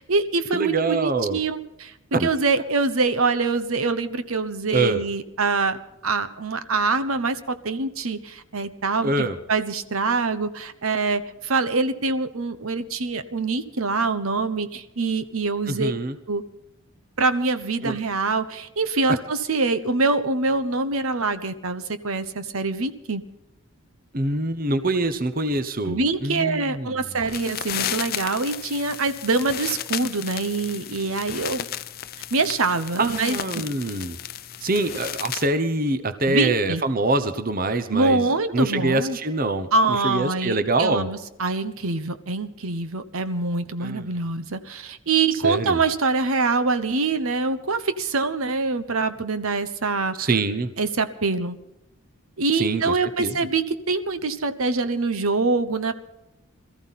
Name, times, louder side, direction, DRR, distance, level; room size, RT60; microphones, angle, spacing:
voice 1, 0.0-1.9 2.2-5.8 6.0-15.9 16.3-16.4 17.2-23.2 25.8-31.7 32.3-33.6 36.3-36.8 37.9-39.2 39.7-50.3 50.8-51.6 52.4-55.9, right 3 dB, 70° right, 11 dB, 1.0 m, -24 dB
voice 2, 0.5-1.4 2.1-2.3 4.7-5.0 9.0-9.4 15.7-16.2 17.8-17.9 24.1-27.2 33.0-34.2 34.6-41.1 43.8-44.2 45.3-45.8 50.2-50.7 52.5-53.4, right 2 dB, 40° right, 11 dB, 0.9 m, -25 dB
sound 1, 27.2-35.5, left 10 dB, 40° left, 0.5 m, -33 dB
22.5 x 14.0 x 4.2 m, 0.89 s
head